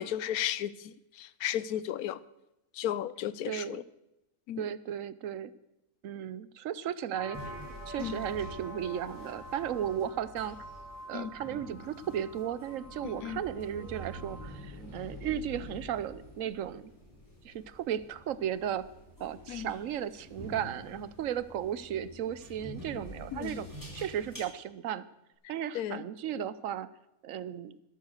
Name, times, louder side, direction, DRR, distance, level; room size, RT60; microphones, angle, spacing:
voice 1, 0.0-2.2 2.7-3.8 4.5-4.6 8.0-8.2 11.1-11.3 13.0-13.4 19.5-19.7 23.3-23.6 25.7-26.0, left 11 dB, 80° left, 17 dB, 1.1 m, -34 dB
voice 2, 3.4-3.8 4.6-5.5 6.0-7.4 7.9-10.6 11.1-16.9 17.4-18.9 19.2-23.7 23.9-25.0 25.5-26.9 27.2-27.8, right 10 dB, 65° right, 16 dB, 1.0 m, -35 dB
sound 1, 7.1-14.4, right 1 dB, 10° right, 6.7 m, -47 dB
sound 2, 7.3-24.4, equal, 10° left, 4.4 m, -47 dB
13.0 x 12.0 x 6.5 m, 0.92 s
omnidirectional pair, 1.5 m